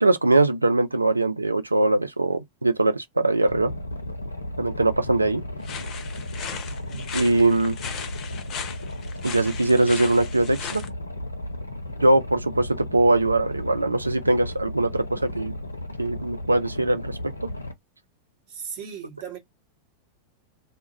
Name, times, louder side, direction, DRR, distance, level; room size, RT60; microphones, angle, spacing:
voice 1, 0.0-3.7 4.6-5.4 7.1-7.7 9.2-10.8 12.0-15.5 16.0-17.5, right 2 dB, 80° right, 0.3 m, -21 dB
Boat Water vehicle, 3.4-17.7, left 1 dB, 80° left, 0.5 m, -35 dB
sound 1, 5.6-10.9, left 7 dB, 35° left, 0.5 m, -37 dB
voice 2, 6.9-7.3 18.5-19.4, right 7 dB, 45° right, 1.0 m, -37 dB
2.2 x 2.0 x 2.9 m
figure-of-eight pair, 90°, 0 cm